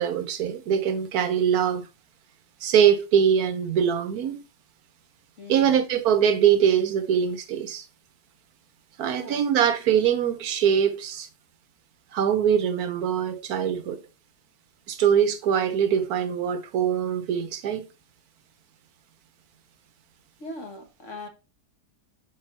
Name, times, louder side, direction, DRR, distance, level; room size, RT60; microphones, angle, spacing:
voice 1, 0.0-1.9 2.6-4.4 5.5-7.8 9.0-11.3 12.1-14.0 14.9-17.9, right 8 dB, 75° right, 1.2 m, -23 dB
voice 2, 5.4-5.8 9.1-9.4 20.4-21.3, left 2 dB, 50° left, 1.6 m, -40 dB
5.4 x 4.8 x 4.3 m
omnidirectional pair, 1.7 m